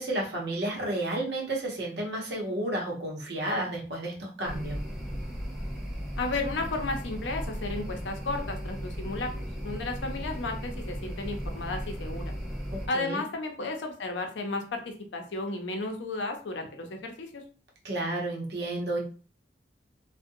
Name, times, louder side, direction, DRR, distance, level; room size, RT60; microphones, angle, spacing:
voice 1, 0.0-4.8 12.7-13.2 17.8-19.0, right 1 dB, 65° right, -2 dB, 0.9 m, -31 dB
sound 1, 4.4-12.9, equal, ahead, 0.6 m, -36 dB
voice 2, 6.2-12.3 12.9-17.4, left 3 dB, 90° left, 4 dB, 0.6 m, -33 dB
2.5 x 2.2 x 2.6 m, 0.38 s
head